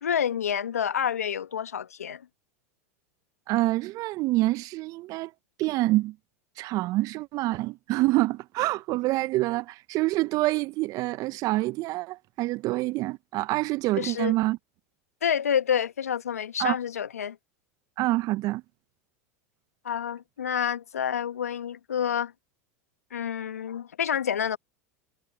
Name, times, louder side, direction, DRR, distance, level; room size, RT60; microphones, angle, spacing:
voice 1, 0.0-2.2 14.0-14.3 15.2-17.4 19.8-22.3 23.1-24.6, left 8 dB, 85° left, 1.3 m, -28 dB
voice 2, 3.5-5.3 5.6-6.1 6.6-14.6 16.6-16.7 18.0-18.6, right 19 dB, 50° right, 1.1 m, -26 dB
hypercardioid pair, 85°, 8 cm